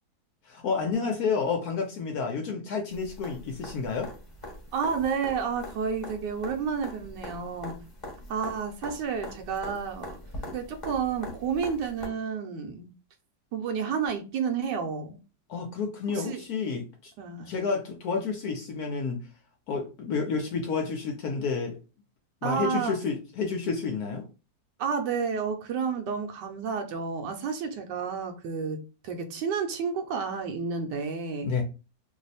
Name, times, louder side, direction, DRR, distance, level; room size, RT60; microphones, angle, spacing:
voice 1, 0.4-4.1 15.5-17.1 17.5-19.2 19.7-21.8 22.4-24.3 31.4-31.6, left 5 dB, 65° left, 1.0 m, -30 dB
sound 1, 2.9-12.1 14.1-14.2, left 1 dB, 15° left, 0.9 m, -42 dB
voice 2, 4.7-7.8 8.3-10.2 10.5-12.9 13.5-15.2 16.1-16.4 17.2-17.5 22.4-22.9 24.8-31.5, right 6 dB, 70° right, 1.2 m, -30 dB
3.1 x 2.1 x 4.0 m
omnidirectional pair, 2.0 m